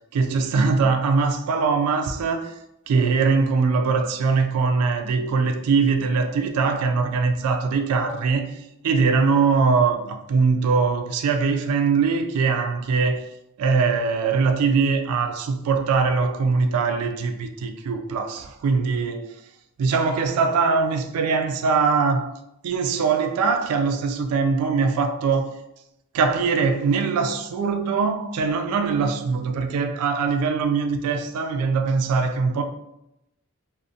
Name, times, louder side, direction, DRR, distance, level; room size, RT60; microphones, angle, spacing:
voice 1, 0.1-2.6 2.9-13.3 13.6-19.3 19.8-22.3 22.6-25.6 26.1-32.6, right 4 dB, 85° right, 0.3 m, -22 dB
2.5 x 2.1 x 2.6 m
head